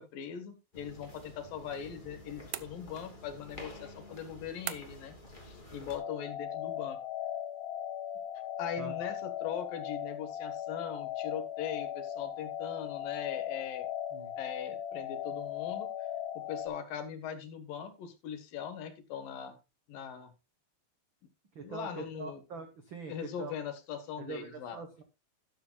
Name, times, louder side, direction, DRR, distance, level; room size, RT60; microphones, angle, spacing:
voice 1, 0.0-5.2 5.5-7.0 8.6-13.9 14.4-15.9 16.5-19.6 19.9-20.3 21.6-22.4 23.1-24.8, left 8 dB, 70° left, 8 dB, 3.1 m, -40 dB
sound 1, 0.7-6.0, left 1 dB, 15° left, 2.5 m, -50 dB
sound 2, 2.5-3.3 4.7-5.2, right 14 dB, 85° right, 1.7 m, -41 dB
sound 3, 6.0-16.7, left 10 dB, 55° left, 2.0 m, -38 dB
voice 2, 8.8-9.1 14.1-14.3 21.5-23.5 24.2-25.0, right 4 dB, 70° right, 7 dB, 1.1 m, -44 dB
12.5 x 11.5 x 2.4 m, 0.26 s
omnidirectional pair, 4.3 m